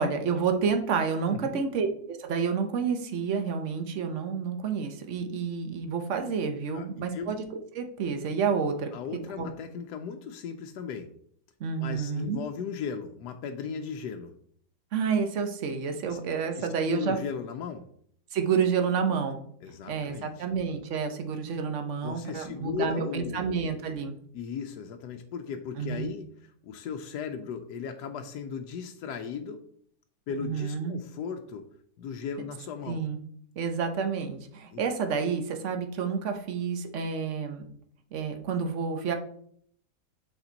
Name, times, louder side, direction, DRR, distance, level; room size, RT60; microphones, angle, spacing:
voice 1, 0.0-7.5 7.7-8.9 9.4-9.5 11.6-12.4 14.9-17.2 18.3-19.4 19.9-24.2 25.8-26.1 30.4-31.0 32.9-33.2 33.6-37.6 38.1-39.1, right 6 dB, 55° right, 6 dB, 1.1 m, -29 dB
voice 2, 1.3-1.6 6.7-7.3 8.9-11.1 11.8-14.3 16.1-16.2 16.5-17.8 19.6-20.5 22.0-23.4 24.3-29.6 30.3-31.7 32.0-33.1 34.7-34.8, left 6 dB, 85° left, 5 dB, 1.2 m, -37 dB
7.1 x 4.3 x 3.9 m, 0.64 s
omnidirectional pair, 1.7 m